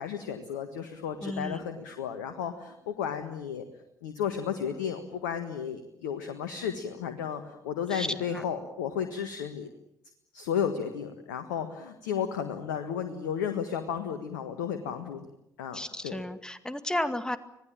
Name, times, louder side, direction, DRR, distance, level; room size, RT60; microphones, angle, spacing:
voice 1, 0.0-3.6 4.0-9.7 10.3-15.3 15.6-16.2, left 8 dB, 70° left, 8 dB, 1.7 m, -33 dB
voice 2, 1.2-1.6 7.9-8.1 8.3-8.4 15.7-17.4, left 1 dB, 5° left, 11 dB, 2.0 m, -33 dB
25.5 x 18.5 x 9.0 m, 0.81 s
figure-of-eight pair, 50°, 10 cm